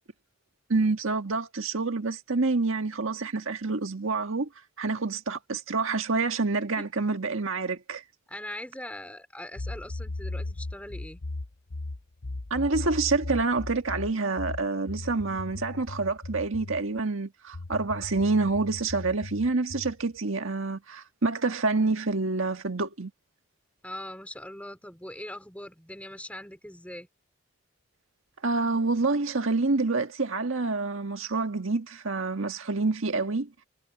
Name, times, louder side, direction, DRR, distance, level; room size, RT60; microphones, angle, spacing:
voice 1, 0.7-4.5 4.8-8.0 12.5-23.1 28.4-33.5, right 3 dB, 75° right, 1.6 m, -27 dB
voice 2, 8.3-11.2 23.8-27.1, left 1 dB, 5° left, 3.8 m, -41 dB
sound 1, 9.6-16.9 17.5-20.0, left 2 dB, 55° left, 0.7 m, -37 dB
head